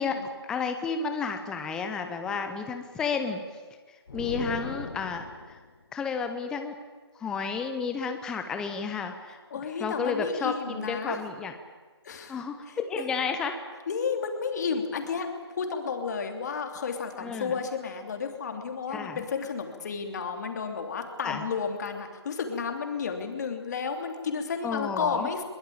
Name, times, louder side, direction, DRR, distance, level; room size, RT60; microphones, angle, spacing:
voice 1, 0.0-3.4 3.9-5.6 5.9-6.8 7.2-9.4 9.8-11.5 12.3-13.6 17.2-17.6 18.9-19.2 21.2-21.4 24.6-25.3, left 5 dB, 5° left, 7 dB, 0.7 m, -31 dB
sound 1, 4.1-5.6, left 5 dB, 55° left, 2.0 m, -37 dB
voice 2, 9.5-11.2 12.0-12.4 12.7-13.1 13.9-15.3 15.5-25.4, left 5 dB, 40° left, 5 dB, 3.1 m, -32 dB
22.5 x 21.0 x 8.7 m, 1.4 s
figure-of-eight pair, 160°, 14 cm